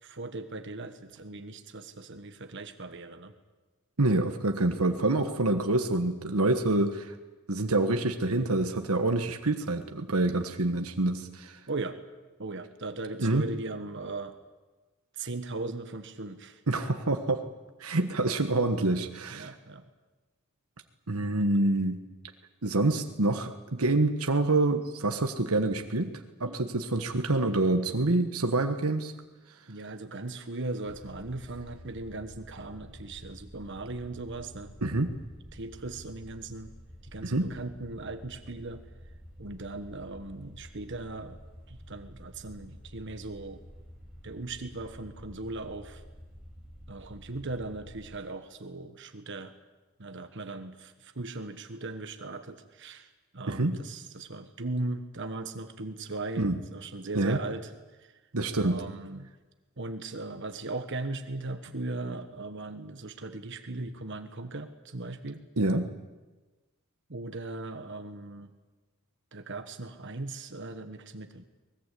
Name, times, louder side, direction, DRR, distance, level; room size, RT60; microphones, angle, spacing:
voice 1, 0.0-3.3 11.7-12.0 12.4-14.4 15.1-16.6 19.3-19.8 26.5-26.7 29.7-34.7 35.5-36.7 37.1-38.8 39.4-41.4 41.7-43.6 44.2-46.0 46.9-49.5 50.0-53.1 53.3-56.5 56.7-57.7 58.0-58.1 58.6-59.3 59.8-65.4 67.1-68.5 69.3-71.4, right 2 dB, 55° right, 8 dB, 1.3 m, -38 dB
voice 2, 4.0-7.1 7.5-11.6 13.2-13.4 16.7-17.4 17.8-19.5 21.1-22.0 22.6-26.1 26.4-29.1 34.8-35.1 37.2-37.5 53.5-53.8 56.4-56.6 57.1-57.4 58.3-58.8 65.6-65.9, right 2 dB, 90° right, 6 dB, 1.4 m, -26 dB
sound 1, 30.9-48.1, equal, 5° right, 6.4 m, -49 dB
24.0 x 20.5 x 8.5 m, 1.2 s
head